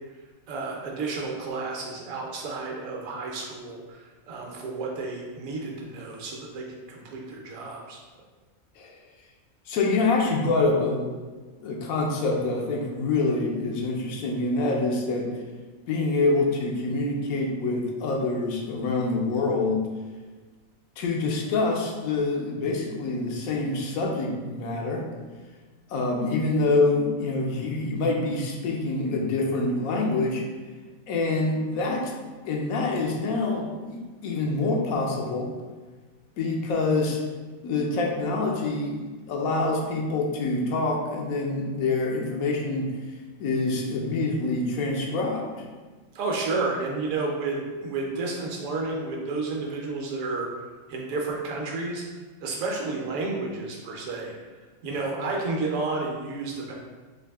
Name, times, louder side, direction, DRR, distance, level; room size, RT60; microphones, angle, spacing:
voice 1, 0.5-8.0 46.1-50.5 50.9-52.0 52.4-54.3 54.8-56.7, right 3 dB, 75° right, -1 dB, 1.1 m, -31 dB
voice 2, 9.7-11.1 11.6-15.4 15.9-19.9 21.0-25.1 25.9-30.4 31.1-32.1 32.4-35.5 36.4-37.2 37.6-42.9 43.4-45.6, left 3 dB, 90° left, 0 dB, 1.1 m, -26 dB
3.9 x 2.6 x 3.4 m, 1.3 s
omnidirectional pair, 1.5 m